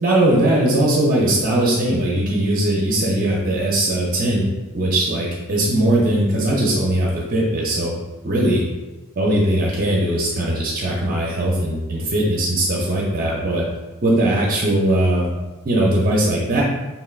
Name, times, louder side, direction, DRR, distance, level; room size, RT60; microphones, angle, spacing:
voice 1, 0.0-4.4 4.7-7.9 8.2-8.6 9.2-13.6 14.0-15.3 15.6-16.6, right 1 dB, 40° right, -3 dB, 0.6 m, -19 dB
5.6 x 3.3 x 2.4 m, 1.2 s
head